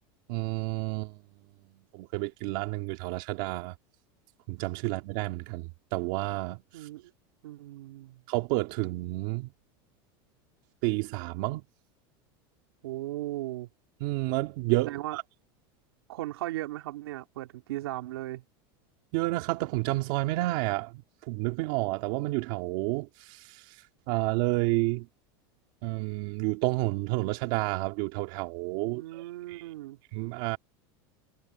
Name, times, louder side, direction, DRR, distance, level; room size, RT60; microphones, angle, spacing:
voice 1, 0.3-1.1 1.9-3.7 4.5-6.9 8.3-9.5 10.8-11.6 14.0-15.2 19.1-20.9 21.3-23.8 24.1-25.1 25.8-29.6 30.1-30.6, right 21 dB, 60° right, 2.2 m, -30 dB
voice 2, 6.7-7.1 7.4-8.2 12.8-13.7 14.8-15.2 16.1-18.4 28.9-30.0, right 16 dB, 90° right, 3.0 m, -37 dB
supercardioid pair, 140°, 12 cm